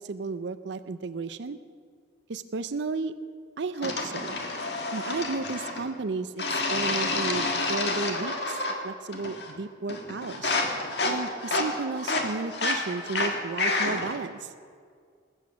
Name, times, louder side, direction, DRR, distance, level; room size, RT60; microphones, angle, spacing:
voice 1, 0.0-1.6 2.3-3.1 3.6-4.4 4.9-8.6 8.8-10.6 11.0-14.5, right 4 dB, 65° right, 12 dB, 0.5 m, -33 dB
sound 1, 3.8-5.9 6.4-8.8 9.1-9.6 9.9-14.2, left 2 dB, 60° left, 1.6 m, -29 dB
20.0 x 8.0 x 6.2 m, 2.1 s
head